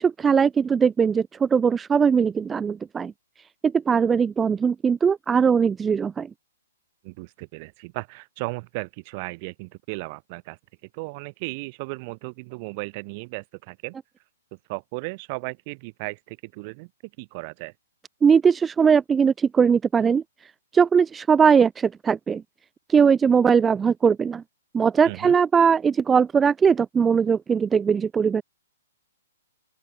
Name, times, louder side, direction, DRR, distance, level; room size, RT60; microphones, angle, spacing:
voice 1, 0.0-3.1 3.6-6.3 18.2-22.4 22.9-24.4 24.7-28.4, right 6 dB, 15° right, 0.6 m, -20 dB
voice 2, 7.0-10.6 10.9-14.0 14.7-16.9 17.2-17.7 25.0-25.3, right 29 dB, 40° right, 5.7 m, -35 dB
open air
hypercardioid pair, 125°, 0 cm